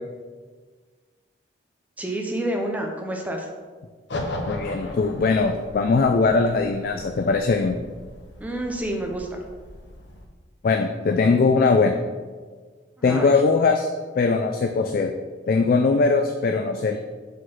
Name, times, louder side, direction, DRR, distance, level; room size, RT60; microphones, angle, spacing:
voice 1, 2.0-3.5 8.4-9.4 13.1-13.3, right 1 dB, 10° right, 1 dB, 0.6 m, -28 dB
sound 1, 4.1-10.3, left 1 dB, 65° left, 0.7 m, -37 dB
voice 2, 4.4-7.8 10.6-11.9 13.0-13.9 14.2-15.1 15.5-17.0, left 4 dB, 45° left, 4 dB, 0.3 m, -20 dB
5.1 x 3.9 x 5.6 m, 1.5 s
head